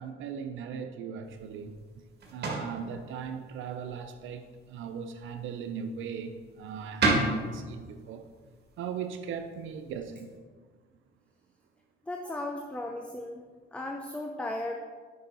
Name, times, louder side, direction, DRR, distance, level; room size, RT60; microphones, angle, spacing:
voice 1, 0.0-1.7 2.3-8.2 8.8-10.3, right 7 dB, 80° right, 0.6 m, -38 dB
sound 1, 1.2-10.4, right 2 dB, 55° right, 2.0 m, -36 dB
voice 2, 12.1-13.4 13.7-14.8, left 2 dB, 5° left, 0.6 m, -36 dB
8.6 x 5.4 x 4.0 m
cardioid pair, 90°, 20 cm